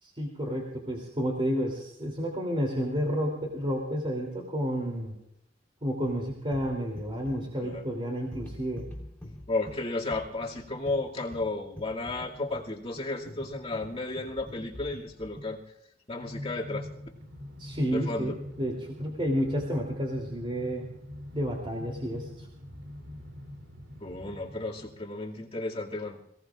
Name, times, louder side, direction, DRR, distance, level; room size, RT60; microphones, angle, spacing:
voice 1, 0.0-5.2 5.8-8.8 17.6-18.3 18.6-20.9 21.3-22.5, equal, 30° right, 0 dB, 3.1 m, -31 dB
sound 1, 6.1-15.6, left 1 dB, 10° left, 3.8 m, -46 dB
voice 2, 9.5-15.6 16.1-16.9 17.9-18.4 24.0-26.2, left 2 dB, 30° left, -2 dB, 2.4 m, -33 dB
Train, 16.2-25.1, left 1 dB, 75° right, 3.2 m, -43 dB
28.0 x 17.5 x 2.5 m, 0.79 s
head